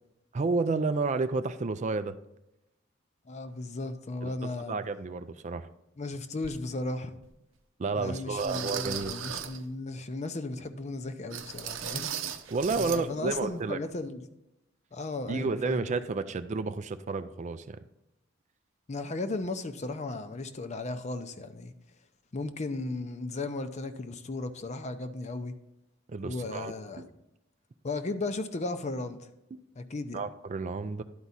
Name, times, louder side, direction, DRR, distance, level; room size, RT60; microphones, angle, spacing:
voice 1, 0.3-2.2 4.2-4.3 4.7-5.7 7.8-9.1 12.5-13.8 15.3-17.8 26.1-27.1 30.1-31.0, right 3 dB, 35° right, 0.4 m, -31 dB
voice 2, 3.3-4.7 6.0-7.1 8.0-12.2 12.8-14.2 14.9-15.8 18.9-21.7 22.3-25.5 26.2-27.0 27.8-29.2 29.8-30.2, left 2 dB, 35° left, 0.6 m, -35 dB
sound 1, 6.4-6.6 7.2-7.3 8.4-9.6 11.3-13.0 13.3-13.5 13.9-14.0, right 9 dB, 90° right, 0.7 m, -37 dB
11.0 x 4.7 x 4.1 m
head